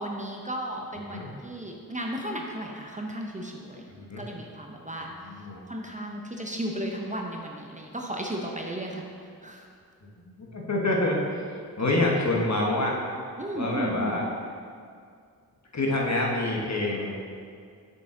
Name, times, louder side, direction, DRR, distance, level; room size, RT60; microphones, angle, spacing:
voice 1, 0.0-5.1 5.7-9.1 9.4-9.7 13.4-14.2, right 1 dB, 20° right, 0 dB, 0.8 m, -34 dB
voice 2, 3.9-4.3 5.0-5.6 10.2-11.4 11.8-13.0 13.5-14.2 15.7-17.2, left 2 dB, 45° left, -2 dB, 1.3 m, -27 dB
6.2 x 5.6 x 3.8 m, 2.2 s
cardioid pair, 45°, 38 cm